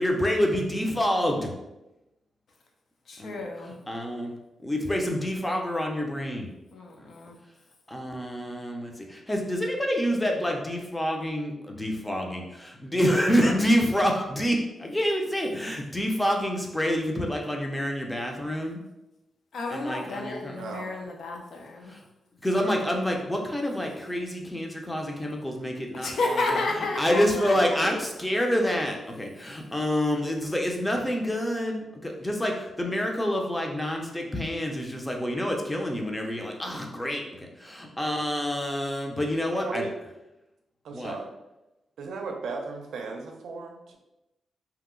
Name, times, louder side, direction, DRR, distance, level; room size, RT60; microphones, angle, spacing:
voice 1, 0.0-1.5 3.2-3.4 3.9-4.3 4.6-6.5 7.0-7.1 7.9-18.8 19.7-20.6 21.9-22.0 22.4-26.6 27.0-39.8 40.9-41.1, equal, 10° left, 1 dB, 0.5 m, -27 dB
voice 2, 3.1-3.8 6.7-7.4 19.5-22.0 26.0-27.9, left 2 dB, 70° left, 1 dB, 0.6 m, -31 dB
voice 3, 20.5-20.9 39.5-39.9 40.8-41.3 42.0-44.0, right 4 dB, 85° right, 3 dB, 0.5 m, -36 dB
2.8 x 2.0 x 3.6 m, 0.95 s
cardioid pair, 105°, 0 cm